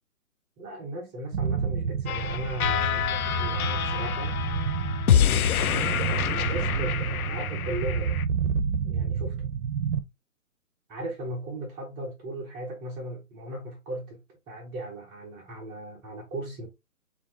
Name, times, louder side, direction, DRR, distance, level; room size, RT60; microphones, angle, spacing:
voice 1, 0.6-4.4 5.3-8.2 8.8-9.5 10.9-16.7, right 1 dB, 15° right, 0.8 m, -37 dB
sound 1, 1.3-10.0, right 7 dB, 60° right, 0.7 m, -29 dB
sound 2, 2.1-8.2, left 9 dB, 80° left, 0.5 m, -27 dB
6.7 x 2.7 x 2.6 m
figure-of-eight pair, 135°, 42 cm